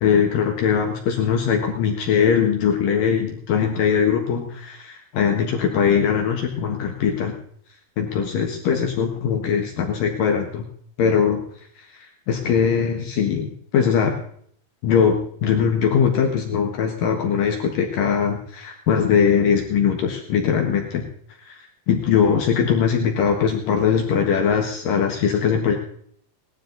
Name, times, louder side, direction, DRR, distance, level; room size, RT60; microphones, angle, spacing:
voice 1, 0.0-7.3 8.0-10.7 11.0-11.4 11.8-14.2 14.8-21.0 21.5-25.8, left 7 dB, 65° left, 2 dB, 3.0 m, -21 dB
19.5 x 12.5 x 4.0 m, 0.62 s
omnidirectional pair, 4.5 m